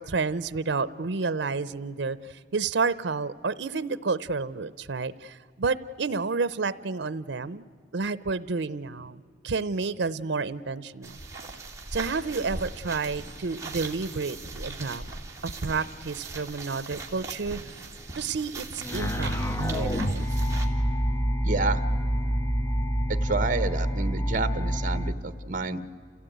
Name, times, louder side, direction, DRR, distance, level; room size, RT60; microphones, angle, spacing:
voice 1, 0.0-7.7 7.9-11.2 11.9-15.1 15.4-17.6 18.1-20.3, right 4 dB, 80° right, 17 dB, 0.6 m, -30 dB
sound 1, 11.0-20.7, right 3 dB, 15° right, 2.4 m, -39 dB
sound 2, 18.8-25.1, equal, 15° left, 0.8 m, -27 dB
voice 2, 21.4-21.8 23.1-25.8, right 3 dB, 50° right, 14 dB, 1.1 m, -29 dB
28.5 x 16.0 x 9.2 m, 2.3 s
head